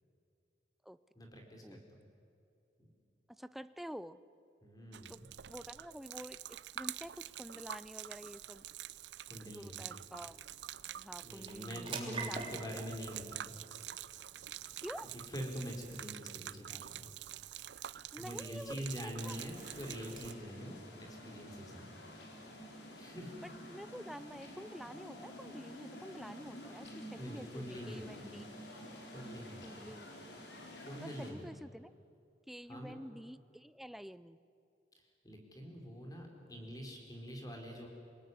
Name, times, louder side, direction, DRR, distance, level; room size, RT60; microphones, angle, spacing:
voice 1, 1.1-2.1 2.8-2.9 4.6-5.3 9.3-9.9 11.2-13.6 15.3-17.1 17.9-21.9 23.0-23.4 27.2-28.2 29.1-29.9 30.8-31.5 32.7-32.9 35.0-37.9, equal, 20° left, 2 dB, 4.4 m, -45 dB
voice 2, 3.3-4.2 5.1-5.2 5.5-8.6 9.4-10.4 11.0-12.9 14.8-15.1 18.1-18.7 19.0-19.4 23.4-28.5 29.6-30.1 31.0-31.9 32.5-34.4, equal, ahead, 14 dB, 0.5 m, -48 dB
Gurgling / Liquid, 4.9-20.3, right 12 dB, 80° right, 0.5 m, -47 dB
sound 1, 8.8-23.3, right 4 dB, 30° right, 3.2 m, -52 dB
sound 2, 19.2-31.3, equal, 85° left, 4.7 m, -50 dB
27.5 x 18.5 x 9.6 m, 2.6 s
head